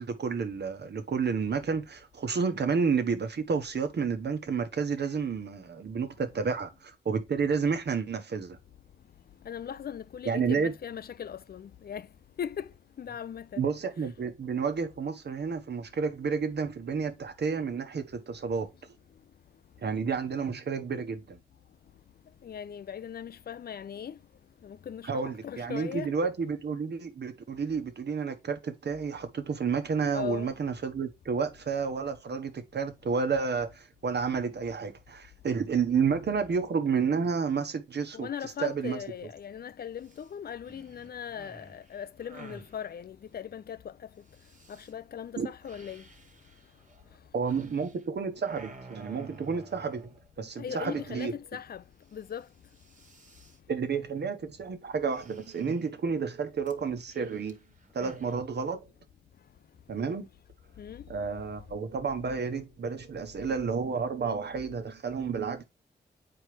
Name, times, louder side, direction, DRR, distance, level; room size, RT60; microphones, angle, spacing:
voice 1, 0.0-8.6 10.2-10.7 13.6-18.7 19.8-21.4 25.0-38.3 38.6-39.0 45.4-45.5 47.3-51.3 53.7-57.6 57.9-58.8 59.9-60.3 61.1-65.6, right 5 dB, 65° right, 1.2 m, -30 dB
voice 2, 9.4-12.1 12.4-12.7 13.0-13.7 22.4-24.2 24.6-26.3 30.1-30.5 38.1-43.9 44.7-46.0 50.6-51.8 52.1-52.5 60.8-61.0, left 8 dB, 60° left, 0.5 m, -39 dB
sound 1, 40.0-40.3 40.6-42.8 44.3-44.9 45.6-48.1 48.3-50.3 50.7-51.5 51.8-51.9 52.1-52.4 52.7-53.6 55.0-56.0 56.7-58.4, right 3 dB, 45° right, 1.4 m, -51 dB
7.8 x 4.6 x 3.3 m
cardioid pair, 55°, 18 cm